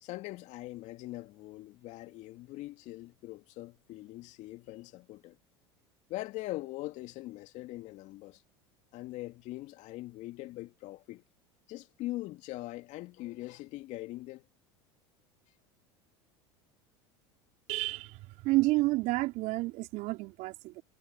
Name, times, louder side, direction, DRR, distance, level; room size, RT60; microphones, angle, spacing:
voice 1, 0.0-5.4 6.1-8.4 8.9-11.2 11.7-14.4, left 18 dB, 55° left, 2.5 m, -42 dB
voice 2, 17.7-18.2 18.4-20.8, right 21 dB, 60° right, 3.6 m, -30 dB
hypercardioid pair, 80°, 15 cm